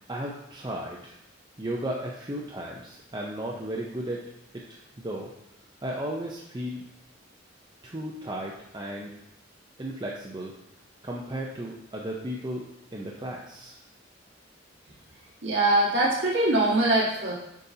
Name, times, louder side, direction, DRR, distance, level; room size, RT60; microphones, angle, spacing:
voice 1, 0.1-1.1 1.6-4.2 4.5-5.3 5.8-6.8 7.8-9.1 9.8-10.5 11.0-12.6 12.9-13.8, right 1 dB, 20° right, -3 dB, 0.7 m, -35 dB
voice 2, 15.4-17.3, right 2 dB, 75° right, -5 dB, 1.7 m, -22 dB
8.5 x 5.1 x 2.8 m, 0.84 s
head